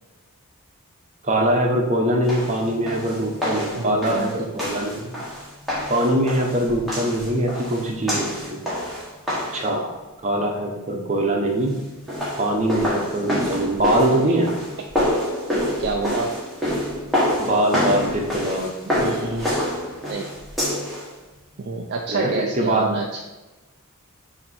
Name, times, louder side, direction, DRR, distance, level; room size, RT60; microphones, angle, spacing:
voice 1, 1.2-5.1 5.9-8.6 9.5-9.9 10.2-11.7 12.4-14.5 17.4-18.7 22.1-22.9, right 1 dB, 30° right, 1 dB, 1.0 m, -22 dB
sound 1, 2.3-9.7 11.9-21.1, left 1 dB, ahead, 1.5 m, -27 dB
voice 2, 3.8-4.5 9.7-9.9 15.8-16.4 18.9-19.8 20.1-20.3 21.6-23.2, right 3 dB, 50° right, 1 dB, 0.4 m, -28 dB
7.4 x 2.9 x 4.3 m, 1.1 s
head